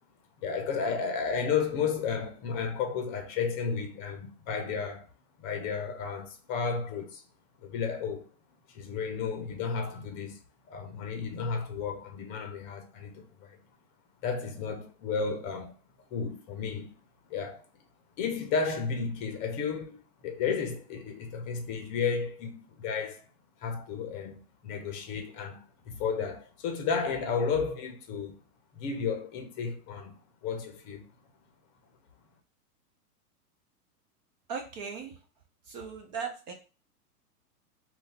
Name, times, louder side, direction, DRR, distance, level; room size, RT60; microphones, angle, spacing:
voice 1, 0.4-5.0 5.4-7.2 7.6-8.3 8.7-10.4 10.7-13.6 14.2-15.7 16.1-16.9 17.3-17.6 18.2-23.2 23.6-24.4 24.6-28.4 28.7-31.1, left 5 dB, 30° left, 0.7 m, -33 dB
voice 2, 34.5-35.2 35.7-36.5, right 6 dB, 30° right, 0.4 m, -38 dB
2.6 x 2.3 x 3.7 m
hypercardioid pair, 120°, 47 cm